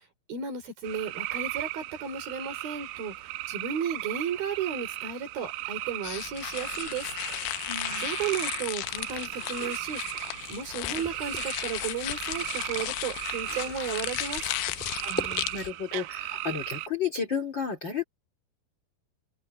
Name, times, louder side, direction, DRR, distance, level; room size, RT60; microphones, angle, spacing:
voice 1, 0.3-3.1 3.5-7.1 8.0-10.0 10.5-14.4, right 6 dB, 60° right, 5.7 m, -34 dB
sound 1, 0.8-16.9, right 17 dB, 80° right, 2.9 m, -37 dB
sound 2, 6.0-15.7, left 18 dB, 85° left, 2.8 m, -35 dB
voice 2, 7.7-8.1 15.0-18.0, left 6 dB, 30° left, 2.9 m, -33 dB
sound 3, 9.2-11.5 11.9-15.7, equal, ahead, 3.7 m, -42 dB
omnidirectional pair, 4.8 m